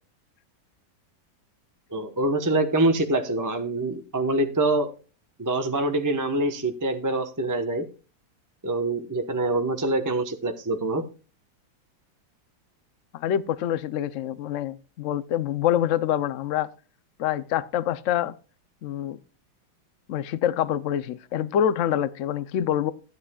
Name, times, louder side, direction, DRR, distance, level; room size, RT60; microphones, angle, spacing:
voice 1, 1.9-4.9 5.4-7.8 8.6-11.0, right 2 dB, 15° right, 0.8 m, -25 dB
voice 2, 13.1-16.7 17.2-18.3 18.8-19.2 20.1-22.9, left 10 dB, 80° left, 0.6 m, -26 dB
15.5 x 10.5 x 2.3 m
omnidirectional pair, 2.1 m